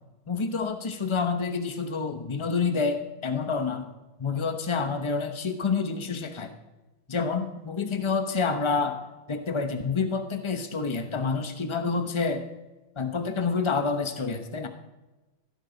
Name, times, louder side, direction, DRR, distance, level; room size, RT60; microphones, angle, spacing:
voice 1, 0.3-3.9 4.2-6.5 7.1-9.0 9.3-12.4 13.0-14.7, left 5 dB, 45° left, 7 dB, 0.4 m, -28 dB
15.5 x 12.0 x 4.0 m, 1.1 s
omnidirectional pair, 2.2 m